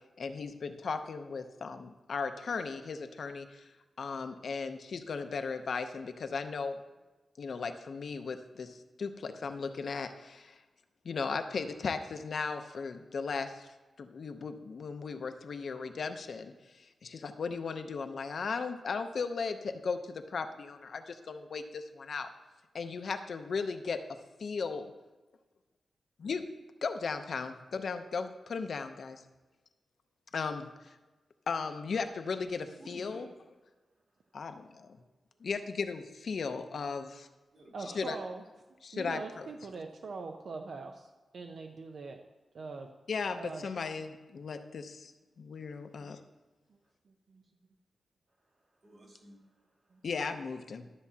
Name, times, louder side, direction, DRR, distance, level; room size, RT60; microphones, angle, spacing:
voice 1, 0.2-3.7 4.0-6.8 7.4-10.6 11.0-13.7 14.0-22.3 22.7-24.0 24.4-24.9 26.2-26.4 26.8-29.2 30.3-30.9 31.5-33.2 34.3-35.0 35.4-37.3 37.9-38.2 38.8-39.5 43.1-45.1 45.4-46.2 50.0-50.9, left 5 dB, 70° left, 7 dB, 0.7 m, -36 dB
voice 2, 32.8-33.3 37.5-38.3 45.6-45.9 46.8-46.9 48.4-50.1, right 1 dB, 50° right, -3 dB, 2.9 m, -55 dB
voice 3, 37.7-38.4 38.9-42.2 42.5-42.9 43.4-43.7 46.0-46.1 47.1-47.4 49.9-50.0 50.8-50.9, right 4 dB, 70° right, 3 dB, 0.6 m, -43 dB
12.5 x 7.0 x 2.8 m, 1.2 s
cardioid pair, 80°, 0 cm